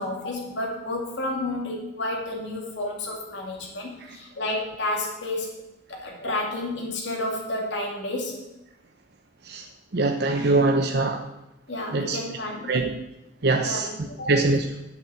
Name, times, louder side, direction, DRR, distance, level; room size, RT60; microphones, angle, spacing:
voice 1, 0.0-5.5 5.9-8.4 11.7-12.7 13.6-13.8 14.1-14.3, left 1 dB, 75° left, -2 dB, 2.5 m, -31 dB
voice 2, 9.9-11.2 11.9-12.2 12.7-12.9 13.4-13.9 14.3-14.6, right 3 dB, 60° right, 3 dB, 0.8 m, -22 dB
8.3 x 7.1 x 8.2 m, 0.91 s
head